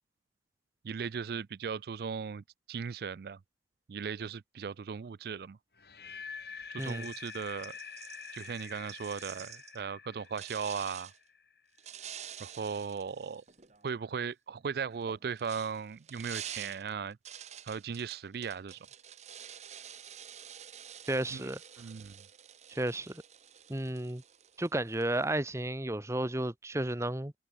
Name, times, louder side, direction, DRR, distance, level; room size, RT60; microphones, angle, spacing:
voice 1, 0.8-3.4 3.9-5.6 6.7-7.8 8.3-11.1 12.4-13.4 13.8-17.2 17.6-18.8 21.3-21.5 21.8-22.1, right 6 dB, 60° right, 0.4 m, -37 dB
sound 1, 5.8-11.8, left 6 dB, 60° left, 5.4 m, -46 dB
voice 2, 6.8-7.1 21.1-21.6 22.7-23.2 23.7-24.2 24.6-27.3, right 1 dB, 15° right, 1.0 m, -33 dB
sound 2, 6.8-9.8 10.3-11.2 11.8-13.9 14.9-25.3, right 9 dB, 40° right, 1.1 m, -48 dB
head